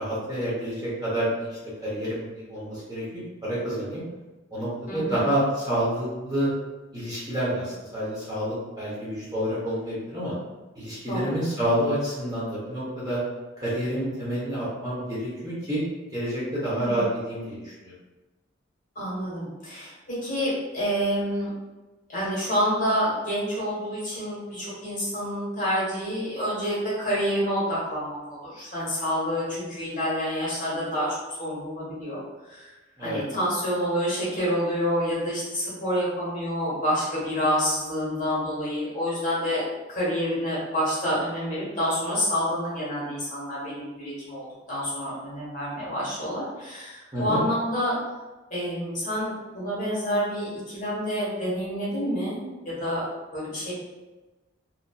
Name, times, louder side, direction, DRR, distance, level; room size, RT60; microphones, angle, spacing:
voice 1, 0.0-4.0 4.5-6.5 6.9-10.3 10.7-13.2 13.6-15.8 16.1-17.9 33.0-33.2 47.1-47.4, equal, 20° right, -9 dB, 0.8 m, -28 dB
voice 2, 4.9-5.2 11.1-11.3 16.7-17.0 18.9-21.5 22.1-32.2 32.5-32.7 33.0-39.6 39.9-48.0 48.5-53.0 53.3-53.7, equal, 40° left, -8 dB, 1.3 m, -28 dB
2.7 x 2.6 x 2.3 m, 1.2 s
head